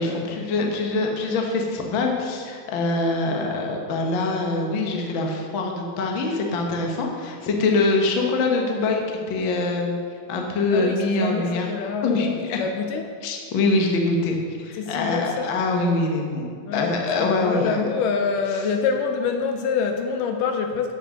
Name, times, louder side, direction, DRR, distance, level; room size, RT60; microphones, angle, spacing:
voice 1, 0.0-10.0 10.3-11.6 12.0-12.6 13.2-17.8, left 3 dB, 60° left, 1 dB, 1.3 m, -24 dB
voice 2, 7.6-7.9 10.7-13.2 14.8-15.5 16.7-20.9, left 5 dB, 80° left, 5 dB, 2.2 m, -26 dB
9.2 x 7.6 x 6.6 m, 2.2 s
omnidirectional pair, 4.0 m